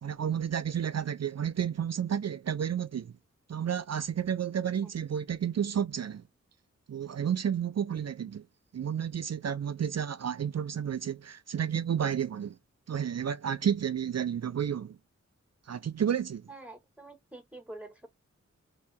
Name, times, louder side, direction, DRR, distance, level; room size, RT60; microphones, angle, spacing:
voice 1, 0.0-3.1 3.5-6.2 6.9-8.4 8.7-12.6 12.9-15.0 15.7-16.5, right 8 dB, 60° right, 0.5 m, -31 dB
voice 2, 16.5-18.1, right 2 dB, 5° right, 1.6 m, -47 dB
3.2 x 2.7 x 3.5 m
wide cardioid pair, 50°, 29 cm